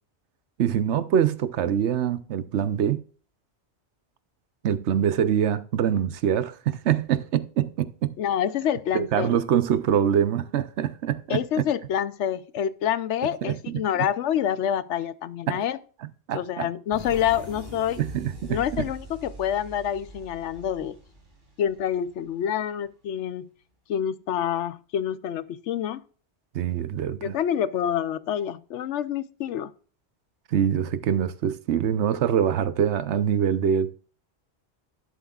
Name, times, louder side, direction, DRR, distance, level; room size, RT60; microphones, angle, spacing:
voice 1, 0.6-3.0 4.6-8.1 8.9-11.6 13.4-13.9 15.5-15.6 16.3-16.7 18.0-18.8 26.5-27.4 30.5-33.9, right 9 dB, 80° right, 1.0 m, -24 dB
voice 2, 8.2-9.4 11.3-15.8 16.3-18.0 18.5-20.9 21.6-23.5 23.9-26.0 27.2-29.7, left 9 dB, 90° left, 1.0 m, -27 dB
sound 1, 16.9-22.4, right 2 dB, 45° right, 2.7 m, -42 dB
11.5 x 11.0 x 2.4 m
omnidirectional pair, 1.2 m